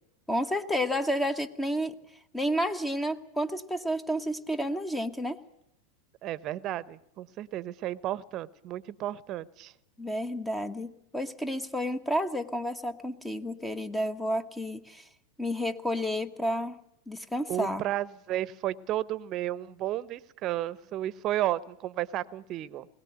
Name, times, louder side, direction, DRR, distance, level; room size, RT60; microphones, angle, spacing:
voice 1, 0.3-1.9 2.3-5.4 10.0-15.0 15.4-16.8 17.1-17.8, equal, 5° left, 9 dB, 1.3 m, -31 dB
voice 2, 6.2-9.7 17.5-22.9, right 13 dB, 40° right, 19 dB, 1.0 m, -33 dB
21.5 x 18.5 x 8.0 m, 0.79 s
hypercardioid pair, 100°, 0 cm